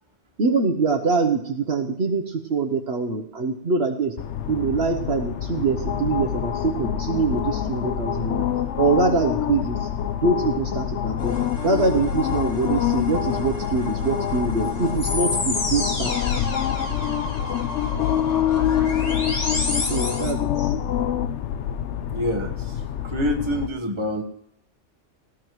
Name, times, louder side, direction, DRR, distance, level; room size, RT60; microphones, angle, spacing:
voice 1, 0.4-4.1 4.5-8.5 8.8-9.9 10.2-16.5 19.8-20.7, right 4 dB, 60° right, 3 dB, 1.2 m, -24 dB
sound 1, 4.2-23.7, left 9 dB, 70° left, 1.0 m, -26 dB
sound 2, 11.2-20.3, left 2 dB, 45° left, 1.8 m, -32 dB
voice 2, 22.1-24.2, equal, 25° right, 4 dB, 1.3 m, -27 dB
18.0 x 15.5 x 3.1 m, 0.74 s
omnidirectional pair, 1.3 m